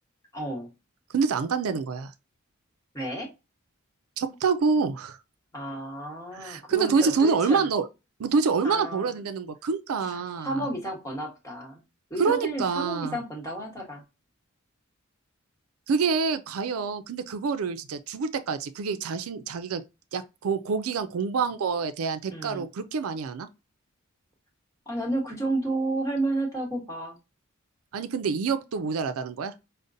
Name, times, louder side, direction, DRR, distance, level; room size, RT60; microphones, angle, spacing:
voice 1, 0.3-0.7 2.9-3.3 5.5-7.7 8.6-9.2 10.0-11.8 12.1-14.0 22.3-22.6 24.9-27.2, right 1 dB, 15° left, 1.2 m, -31 dB
voice 2, 1.1-2.1 4.2-5.2 6.3-7.9 8.2-10.6 12.2-13.2 15.9-19.8 20.1-23.5 27.9-29.5, right 5 dB, 80° right, 0.4 m, -26 dB
5.1 x 2.1 x 2.6 m
head